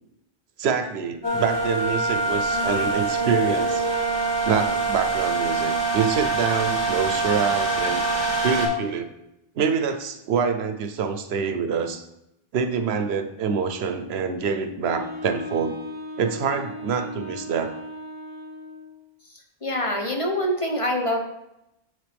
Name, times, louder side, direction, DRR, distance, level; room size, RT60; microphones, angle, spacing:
voice 1, 0.6-3.9 4.4-8.0 8.4-9.1 9.6-12.0 12.5-15.8 16.2-17.7, right 6 dB, 80° right, 8 dB, 0.9 m, -26 dB
sound 1, 1.2-8.7, right 3 dB, 25° right, 2.1 m, -24 dB
Wind instrument woodwind instrument, 14.9-19.0, left 1 dB, 55° left, 1.5 m, -37 dB
voice 2, 19.6-21.2, equal, 35° left, 1 dB, 0.9 m, -25 dB
7.3 x 6.4 x 3.4 m, 0.86 s
omnidirectional pair, 1.1 m